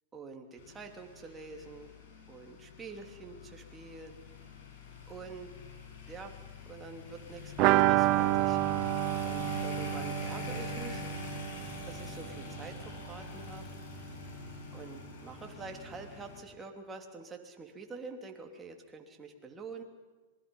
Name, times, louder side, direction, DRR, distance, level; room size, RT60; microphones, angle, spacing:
voice 1, 0.1-1.9 2.3-4.2 5.1-5.5 6.1-6.4 6.7-11.0 11.8-13.6 14.7-19.8, right 4 dB, 20° right, 3 dB, 3.0 m, -46 dB
sound 1, 0.6-16.4, left 5 dB, 65° left, 6.5 m, -44 dB
sound 2, 7.6-13.2 13.4-13.5 13.8-13.9, right 17 dB, 50° right, 0.7 m, -29 dB
26.5 x 20.5 x 5.5 m, 1.3 s
hypercardioid pair, 115°, 0 cm